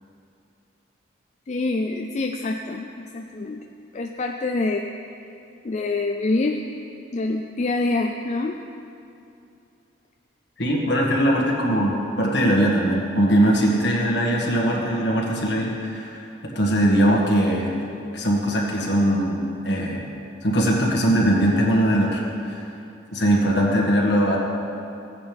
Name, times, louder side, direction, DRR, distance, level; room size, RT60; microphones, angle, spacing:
voice 1, 1.5-3.6 3.9-4.9 5.6-6.6 7.1-8.6, left 2 dB, 35° left, 3 dB, 0.4 m, -26 dB
voice 2, 10.6-16.3 16.6-17.8 18.1-20.0 20.4-22.6 23.1-24.4, equal, 65° left, -2 dB, 1.9 m, -21 dB
16.0 x 9.7 x 3.5 m, 2.7 s
head